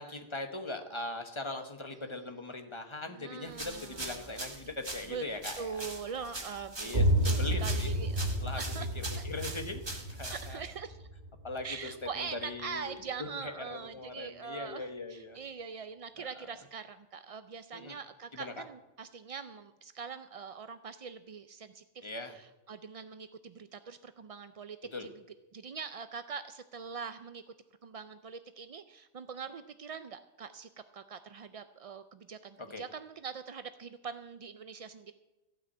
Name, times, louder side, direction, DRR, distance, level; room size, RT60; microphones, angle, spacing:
voice 1, 0.0-5.8 6.8-7.9 8.4-8.6 8.9-10.6 11.4-11.9 12.2-12.9 13.2-15.4 16.2-16.3 17.7-17.9 18.3-18.5 22.0-22.4 24.9-25.1 32.6-32.8, left 2 dB, 25° left, 6 dB, 1.2 m, -40 dB
voice 2, 1.9-2.3 3.1-4.4 5.1-5.2 5.6-6.9 7.2-9.5 10.3-11.1 11.6-25.1 25.5-27.4 27.8-35.1, right 6 dB, 55° right, 11 dB, 0.4 m, -43 dB
sound 1, 3.5-10.8, right 2 dB, 25° right, 1.3 m, -42 dB
sound 2, 6.9-12.5, right 1 dB, 40° right, 1.0 m, -31 dB
15.5 x 6.0 x 8.5 m, 1.0 s
omnidirectional pair, 1.2 m